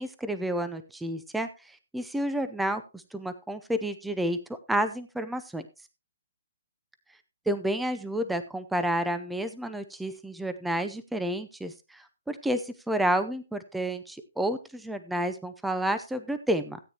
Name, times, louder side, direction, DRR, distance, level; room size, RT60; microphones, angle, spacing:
voice 1, 0.0-1.5 1.9-4.4 4.7-5.6 7.5-16.8, right 1 dB, 5° right, 10 dB, 0.6 m, -30 dB
16.0 x 8.9 x 2.9 m, 0.28 s
hypercardioid pair, 160°, 0 cm